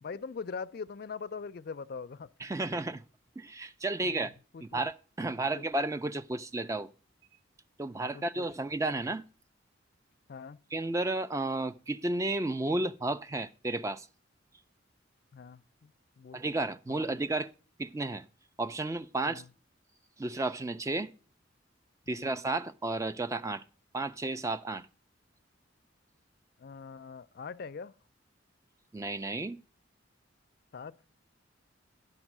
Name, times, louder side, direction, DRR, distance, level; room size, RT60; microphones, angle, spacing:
voice 1, 0.0-2.3 4.0-4.8 5.5-5.6 8.1-8.5 10.3-10.6 15.3-16.4 16.9-17.2 19.2-19.5 22.1-22.4 26.6-27.9 30.7-31.0, left 5 dB, 50° left, 0.4 m, -42 dB
voice 2, 2.4-3.0 3.4-4.3 4.6-6.9 7.8-9.3 10.7-14.1 16.3-17.5 17.8-18.3 18.6-19.4 20.2-21.1 22.1-23.6 23.9-24.9 28.9-29.6, right 2 dB, 15° right, 0.4 m, -32 dB
11.0 x 5.4 x 6.0 m
head